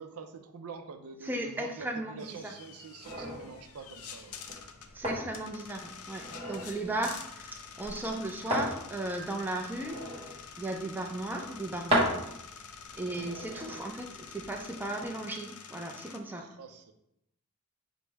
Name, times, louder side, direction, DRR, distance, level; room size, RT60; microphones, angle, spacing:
voice 1, 0.0-4.4 13.6-13.7 16.4-16.9, right 5 dB, 90° right, 7 dB, 0.5 m, -46 dB
voice 2, 1.2-2.5 4.9-10.0 10.6-12.2 12.9-16.5, right 2 dB, 10° right, 2 dB, 0.4 m, -36 dB
sound 1, 2.2-16.2, left 6 dB, 85° left, 0.4 m, -48 dB
sound 2, 3.0-14.9, equal, 25° right, 0.9 m, -37 dB
5.1 x 2.1 x 4.5 m, 0.81 s
head